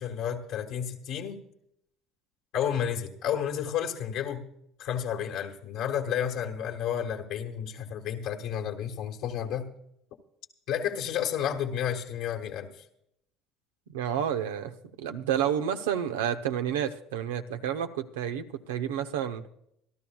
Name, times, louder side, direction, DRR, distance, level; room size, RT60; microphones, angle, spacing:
voice 1, 0.0-1.4 2.5-4.4 4.8-9.7 10.7-12.8, left 9 dB, 70° left, 1 dB, 1.5 m, -31 dB
voice 2, 13.9-19.5, right 9 dB, 85° right, 8 dB, 0.9 m, -30 dB
26.5 x 12.5 x 2.3 m, 0.73 s
hypercardioid pair, 75°, 0 cm